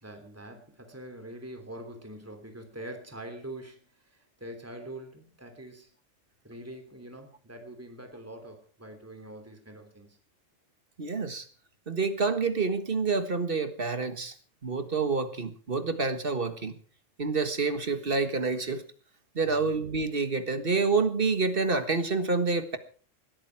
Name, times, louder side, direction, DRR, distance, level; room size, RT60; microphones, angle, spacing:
voice 1, 0.0-5.9 6.4-10.2 19.4-19.6, right 1 dB, 10° right, 5 dB, 3.2 m, -44 dB
voice 2, 11.0-11.5 11.9-14.3 14.6-16.8 17.2-18.8 19.4-22.8, right 4 dB, 45° right, 9 dB, 1.8 m, -28 dB
20.0 x 13.5 x 4.7 m, 0.41 s
omnidirectional pair, 1.3 m